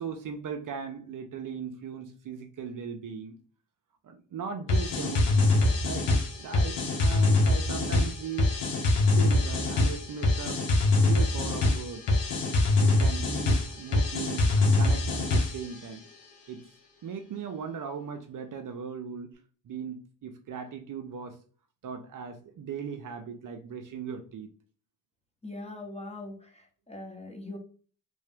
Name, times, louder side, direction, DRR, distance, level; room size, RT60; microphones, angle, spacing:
voice 1, 0.0-3.4 4.0-5.5 5.8-8.5 9.2-10.6 11.0-12.3 12.7-16.0 16.5-16.7 17.0-21.4 21.8-24.5, right 6 dB, 50° right, 0.7 m, -38 dB
sound 1, 4.7-15.7, left 2 dB, 80° left, 1.3 m, -24 dB
voice 2, 25.4-27.6, left 2 dB, 15° left, 1.1 m, -41 dB
3.3 x 2.7 x 3.4 m
supercardioid pair, 70°, 41 cm